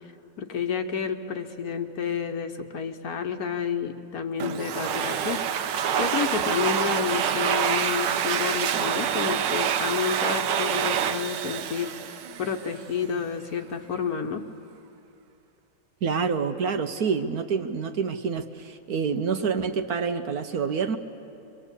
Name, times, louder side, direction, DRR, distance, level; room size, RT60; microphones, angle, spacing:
voice 1, 0.4-5.4 6.0-14.4, left 6 dB, 60° left, 6 dB, 1.3 m, -30 dB
Domestic sounds home sounds, 4.4-12.8, right 8 dB, 75° right, 1.5 m, -26 dB
voice 2, 16.0-21.0, right 5 dB, 60° right, 7 dB, 1.2 m, -27 dB
25.0 x 22.5 x 8.3 m, 2.7 s
omnidirectional pair, 2.0 m